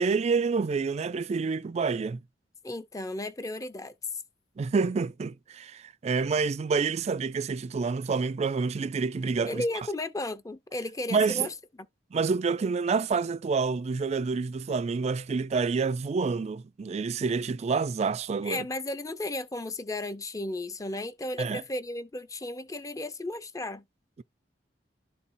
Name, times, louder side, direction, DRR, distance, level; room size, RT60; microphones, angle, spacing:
voice 1, 0.0-2.2 4.6-9.6 11.1-11.5 12.1-18.7 21.4-21.6, right 4 dB, 35° right, 0.3 m, -28 dB
voice 2, 2.6-3.9 9.4-11.5 18.4-23.8, left 1 dB, 20° left, 0.6 m, -34 dB
11.5 x 4.1 x 2.6 m
head